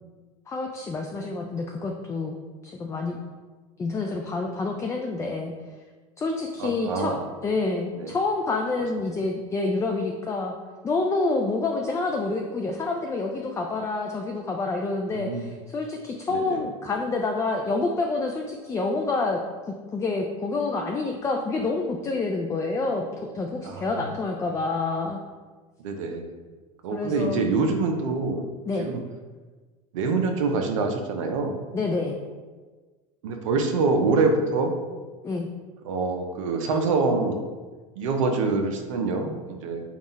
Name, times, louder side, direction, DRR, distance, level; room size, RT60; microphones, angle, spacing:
voice 1, 0.5-2.4 2.6-3.2 3.8-5.5 6.2-7.2 7.4-10.5 10.8-19.4 19.7-25.2 26.9-27.4 28.7-28.9 31.7-32.2 35.2-35.5, left 3 dB, 20° left, 2 dB, 0.3 m, -28 dB
voice 2, 6.6-7.3 8.0-8.1 15.1-15.5 16.3-16.6 23.6-24.1 25.8-26.3 26.8-28.4 28.8-29.0 29.9-31.6 33.2-34.8 35.8-37.4 38.0-39.8, right 3 dB, 85° right, 4 dB, 0.5 m, -25 dB
3.6 x 2.4 x 4.0 m, 1.4 s
supercardioid pair, 100°, 16 cm